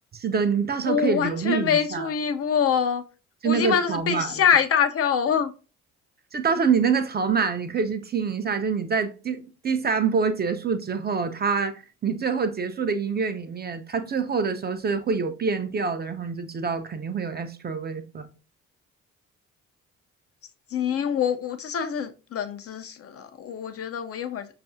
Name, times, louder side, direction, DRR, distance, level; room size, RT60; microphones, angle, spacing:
voice 1, 0.1-2.1 3.4-4.3 6.3-18.3, right 5 dB, 25° right, 0.4 m, -26 dB
voice 2, 0.9-3.0 3.4-5.5 20.7-24.5, left 7 dB, 40° left, 0.4 m, -25 dB
5.2 x 2.4 x 2.5 m
hypercardioid pair, 45°, 38 cm